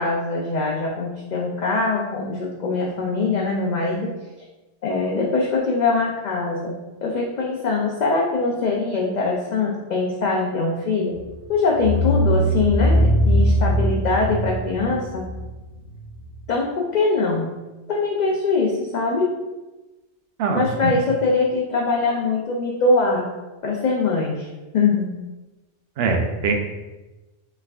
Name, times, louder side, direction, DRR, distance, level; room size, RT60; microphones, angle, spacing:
voice 1, 0.0-4.1 4.8-6.7 7.0-11.1 11.5-15.3 16.5-17.5 17.9-19.3 20.5-23.2 23.6-24.5 24.7-25.1, left 3 dB, 50° left, -1 dB, 0.6 m, -22 dB
sound 1, 11.1-11.3 11.7-16.3, equal, 30° left, 1.0 m, -20 dB
voice 2, 20.4-21.0 26.0-26.5, right 4 dB, 65° right, 3 dB, 0.8 m, -22 dB
5.4 x 3.5 x 2.4 m, 1.1 s
omnidirectional pair, 1.1 m